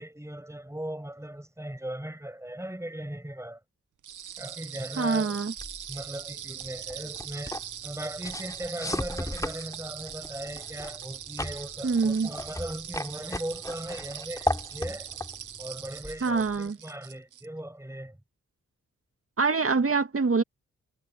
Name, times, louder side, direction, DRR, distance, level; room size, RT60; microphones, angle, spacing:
voice 1, 0.0-3.6 4.4-5.4 5.9-15.1 15.6-18.2, right 1 dB, 10° right, 6.6 m, -38 dB
sound 1, 4.0-17.5, right 9 dB, 75° right, 1.0 m, -41 dB
voice 2, 5.0-5.5 11.8-12.3 16.2-16.8 19.4-20.4, right 4 dB, 45° right, 2.1 m, -25 dB
sound 2, 5.6-16.7, left 1 dB, 10° left, 3.2 m, -37 dB
cardioid pair, 45°, 30 cm